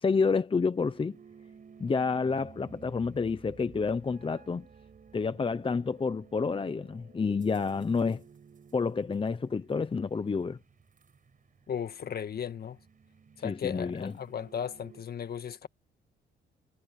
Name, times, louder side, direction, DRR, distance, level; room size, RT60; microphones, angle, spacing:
voice 1, 0.0-1.2 1.8-4.7 5.1-8.2 8.7-10.6 13.4-14.1, left 4 dB, 25° left, 0.9 m, -29 dB
sound 1, 0.7-15.0, right 6 dB, 45° right, 5.5 m, -55 dB
voice 2, 11.7-12.8 13.4-15.7, left 8 dB, 50° left, 1.8 m, -36 dB
cardioid pair, 90°, 20 cm